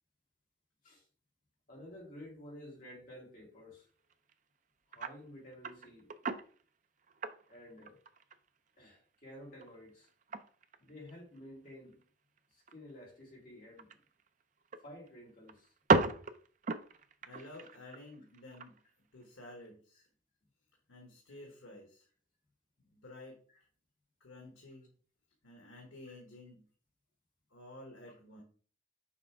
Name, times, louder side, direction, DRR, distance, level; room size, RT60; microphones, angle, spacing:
voice 1, 1.7-3.9 4.9-6.1 7.5-8.0 8.8-10.1 10.8-12.0 12.5-14.0 14.8-15.7, left 1 dB, 40° left, 2.1 m, -52 dB
sound 1, 4.1-4.3 4.9-5.2 5.5-6.6 7.0-8.5 8.8-8.9 9.3-11.4 11.7-12.0 12.4-12.5 12.7-12.8 13.8-14.8 15.1-15.2 15.5-18.8 19.2-19.3, right 3 dB, 40° right, 0.4 m, -34 dB
voice 2, 17.2-20.1 20.9-22.1 22.8-23.4 24.2-24.9 25.4-26.6 27.5-28.4, left 2 dB, 90° left, 1.2 m, -52 dB
6.4 x 3.2 x 4.6 m
head